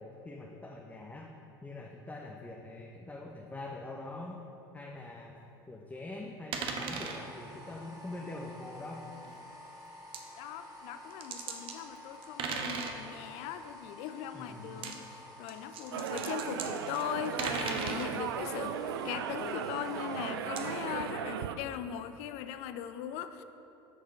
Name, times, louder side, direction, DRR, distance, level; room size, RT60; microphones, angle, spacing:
voice 1, 0.0-1.3 1.6-4.4 4.7-5.4 5.7-9.0 14.3-14.7, left 2 dB, 10° left, -1 dB, 0.7 m, -44 dB
sound 1, 6.5-7.2 9.2-9.4 10.1-10.2 11.1-11.8 12.2-13.0 14.7-15.0 15.5-18.1 20.6-20.7, right 5 dB, 45° right, 0.9 m, -37 dB
sound 2, 6.8-20.3, left 1 dB, 30° right, 1.8 m, -51 dB
voice 2, 10.4-18.8 19.0-23.4, left 10 dB, 60° left, 11 dB, 0.5 m, -39 dB
sound 3, 15.9-21.6, right 8 dB, 80° right, 0.4 m, -37 dB
9.4 x 6.5 x 3.3 m, 2.9 s
hypercardioid pair, 75°, 12 cm